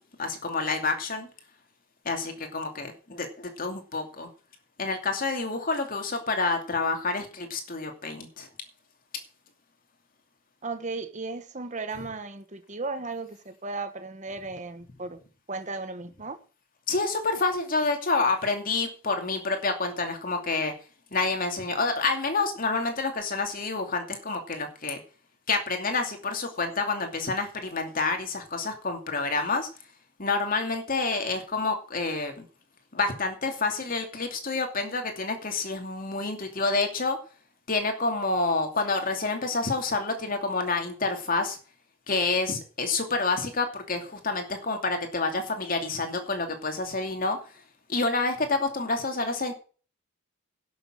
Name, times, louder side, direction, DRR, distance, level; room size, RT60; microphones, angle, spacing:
voice 1, 0.2-1.3 2.0-4.3 4.8-8.5 16.9-20.7 21.1-25.0 25.5-29.7 30.2-32.4 32.9-37.2 37.7-41.6 42.1-47.4 47.9-49.5, left 3 dB, 45° left, 2.7 m, -28 dB
voice 2, 10.6-15.2 15.5-16.4, right 3 dB, 35° right, 1.3 m, -35 dB
11.0 x 6.9 x 7.8 m
head